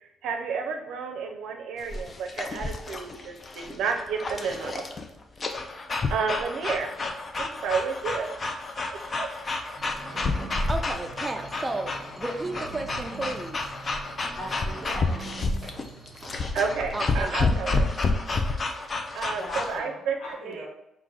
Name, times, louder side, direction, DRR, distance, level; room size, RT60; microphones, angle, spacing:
voice 1, 0.0-4.9 6.1-6.9 7.4-8.4 9.2-9.3 16.5-17.9 19.1-20.7, right 5 dB, 80° right, 4 dB, 0.5 m, -31 dB
sound 1, 1.8-19.8, left 3 dB, 35° left, 0.5 m, -30 dB
sound 2, 9.8-17.1, right 4 dB, 35° right, 0.8 m, -43 dB
voice 2, 10.0-13.6 13.9-14.0 16.9-17.6, right 2 dB, 15° right, 5 dB, 0.4 m, -34 dB
voice 3, 14.4-15.4 19.3-20.7, left 1 dB, 75° left, -2 dB, 1.3 m, -39 dB
4.5 x 2.5 x 3.9 m, 0.87 s
cardioid pair, 90°, 0 cm